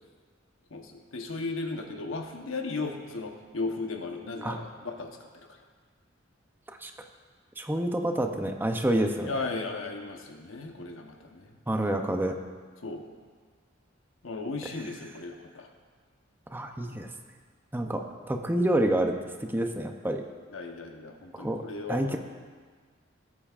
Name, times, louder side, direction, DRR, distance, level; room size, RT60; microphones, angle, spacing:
voice 1, 0.7-5.1 9.3-11.6 12.8-13.1 14.2-15.7 17.8-17.9 20.5-22.2, left 3 dB, 90° left, 3 dB, 1.1 m, -36 dB
voice 2, 7.6-9.4 11.7-12.3 16.5-17.1 17.7-19.1 19.5-20.2 21.3-21.6 21.9-22.2, right 1 dB, 10° right, 4 dB, 0.6 m, -28 dB
17.0 x 8.6 x 2.5 m, 1.5 s
head